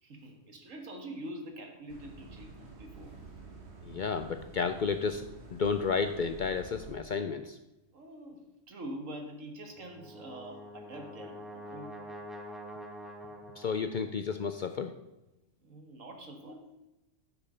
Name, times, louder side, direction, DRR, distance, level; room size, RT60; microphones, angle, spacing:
voice 1, 0.0-2.5 2.8-3.2 7.9-11.9 15.6-16.8, right 1 dB, 75° right, 4 dB, 1.8 m, -45 dB
sound 1, 1.9-6.9, right 3 dB, 55° right, 1.6 m, -49 dB
voice 2, 3.8-5.2 5.5-7.6 13.6-14.9, left 5 dB, 70° left, 9 dB, 0.4 m, -32 dB
Brass instrument, 9.8-14.0, equal, ahead, 0.9 m, -46 dB
10.0 x 6.0 x 5.5 m, 0.98 s
omnidirectional pair, 1.3 m